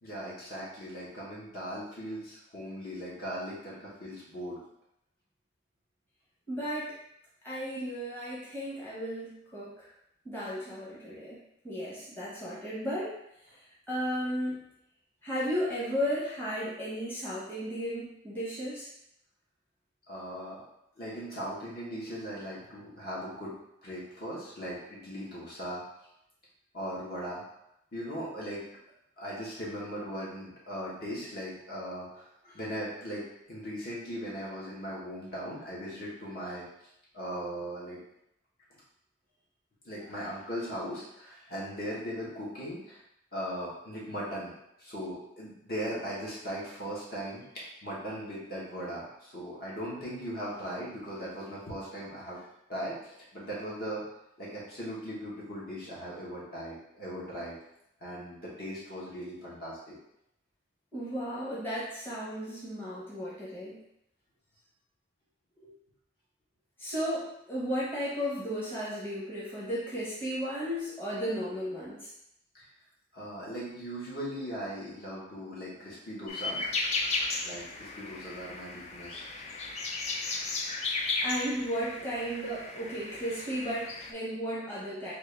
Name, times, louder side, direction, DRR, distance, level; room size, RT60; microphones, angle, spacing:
voice 1, 0.0-4.6 20.1-20.6 21.0-23.5 23.8-25.8 26.7-27.4 27.9-28.6 29.2-36.7 37.1-38.0 39.8-43.0 43.3-44.5 44.8-52.4 52.7-54.0 54.4-57.6 58.0-59.9 65.6-65.7 72.5-72.7 73.1-76.7 77.4-79.2, equal, 55° left, -6 dB, 1.2 m, -39 dB
voice 2, 6.5-6.9 7.4-9.9 10.2-11.4 11.6-13.1 13.9-14.6 15.2-18.9 60.9-63.8 66.8-72.1 81.2-85.1, equal, 10° left, -9 dB, 0.9 m, -34 dB
sound 1, 76.3-84.1, left 3 dB, 35° left, 0.3 m, -35 dB
3.5 x 2.5 x 3.4 m, 0.80 s
head